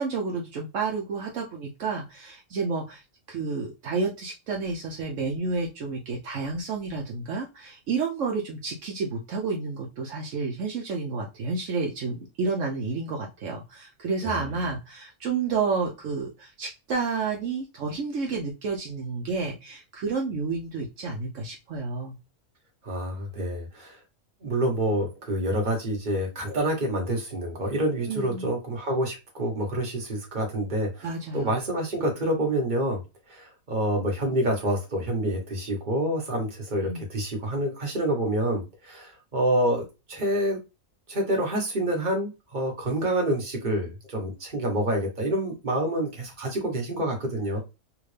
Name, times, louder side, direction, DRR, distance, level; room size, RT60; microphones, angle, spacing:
voice 1, 0.0-3.0 3.3-22.2 28.1-28.5 31.0-31.6 36.8-37.0, right 4 dB, 70° right, 0 dB, 1.0 m, -30 dB
voice 2, 22.8-24.0 24.4-33.0 33.3-40.6 41.1-47.6, right 1 dB, 35° right, 0 dB, 1.4 m, -27 dB
3.5 x 2.5 x 3.3 m, 0.27 s
omnidirectional pair, 1.4 m